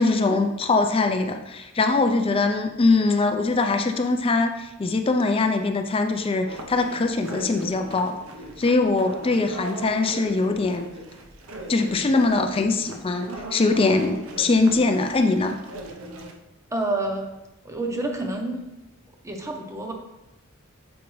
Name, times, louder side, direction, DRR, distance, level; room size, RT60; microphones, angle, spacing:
voice 1, 0.0-8.2 8.6-10.9 11.7-15.6, left 3 dB, 25° left, 6 dB, 0.4 m, -22 dB
sound 1, 6.5-16.3, right 1 dB, 75° right, 0.7 m, -39 dB
voice 2, 16.7-17.3 17.6-18.7 19.2-19.9, right 2 dB, 15° right, 3 dB, 0.7 m, -28 dB
7.1 x 5.0 x 3.1 m, 0.96 s
head